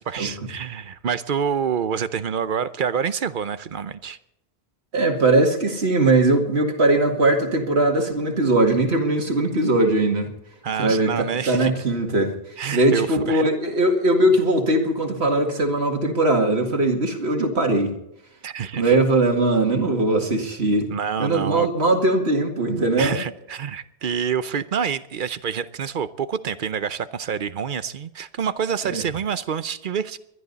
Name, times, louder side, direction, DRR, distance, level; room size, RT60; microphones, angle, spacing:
voice 1, 0.1-4.2 10.6-11.7 12.6-13.5 18.4-18.9 20.9-21.7 23.0-30.2, right 7 dB, 55° right, 14 dB, 0.8 m, -27 dB
voice 2, 4.9-10.3 10.8-12.3 12.7-17.9 18.7-20.9 21.2-23.2 28.9-29.0, right 2 dB, 85° right, 3 dB, 2.3 m, -20 dB
22.0 x 11.5 x 4.1 m, 0.83 s
omnidirectional pair, 1.1 m